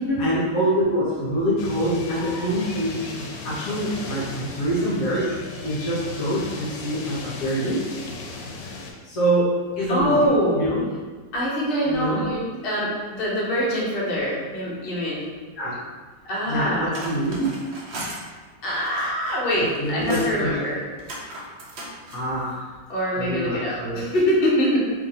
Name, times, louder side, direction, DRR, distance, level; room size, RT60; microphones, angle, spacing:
voice 1, 0.2-5.3 5.6-7.9 9.0-10.8 11.8-12.2 15.6-15.8 16.5-17.5 19.8-20.7 22.1-22.7 23.2-24.1, right 1 dB, 60° left, -7 dB, 1.2 m, -25 dB
sound 1, 1.6-8.9, left 3 dB, 80° left, 1.2 m, -36 dB
voice 2, 9.9-10.5 11.3-15.2 16.2-16.9 18.6-20.8 22.9-24.8, equal, 40° left, -7 dB, 0.9 m, -24 dB
sound 2, 16.7-18.2 18.7-19.4 19.7-20.4 21.0-22.2, right 1 dB, 65° right, 0.6 m, -36 dB
3.0 x 2.6 x 4.0 m, 1.4 s
omnidirectional pair, 1.9 m